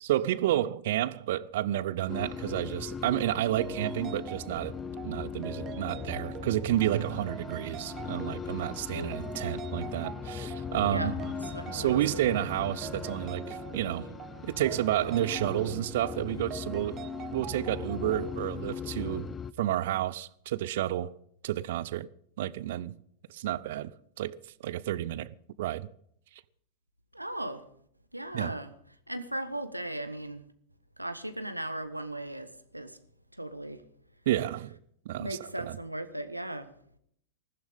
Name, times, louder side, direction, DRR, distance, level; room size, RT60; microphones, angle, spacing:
voice 1, 0.0-4.7 5.0-11.1 11.7-14.1 14.4-16.9 17.3-19.3 19.6-21.1 21.4-22.1 22.4-22.9 23.3-23.9 24.2-24.4 24.6-25.9 28.3-28.5 34.3-34.8 35.1-35.4 35.7-35.8, right 13 dB, 55° right, 0.7 m, -30 dB
sound 1, 2.1-19.5, left 7 dB, 20° left, 0.6 m, -39 dB
sound 2, 3.6-18.4, right 9 dB, 30° right, 1.2 m, -44 dB
voice 2, 8.9-9.3 10.8-11.1 11.4-12.3 27.1-27.6 28.1-28.7 29.1-30.4 31.0-33.0 33.3-33.8 35.2-36.7, right 1 dB, 85° right, 1.2 m, -37 dB
20.5 x 15.5 x 3.6 m
figure-of-eight pair, 90°, 0 cm